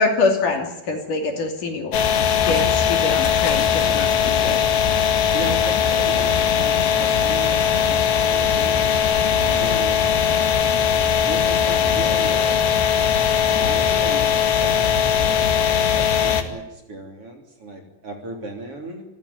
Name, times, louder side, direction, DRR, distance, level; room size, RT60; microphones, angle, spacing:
voice 1, 0.0-1.9 2.5-4.6, left 3 dB, 55° left, 4 dB, 4.1 m, -24 dB
sound 1, 1.9-16.4, left 8 dB, 80° left, 4.1 m, -19 dB
voice 2, 3.8-4.2 5.3-8.8 9.3-10.0 11.2-12.6 13.6-15.3 16.0-19.0, right 2 dB, 35° right, 3 dB, 3.9 m, -35 dB
26.5 x 16.0 x 9.7 m, 0.90 s
omnidirectional pair, 4.8 m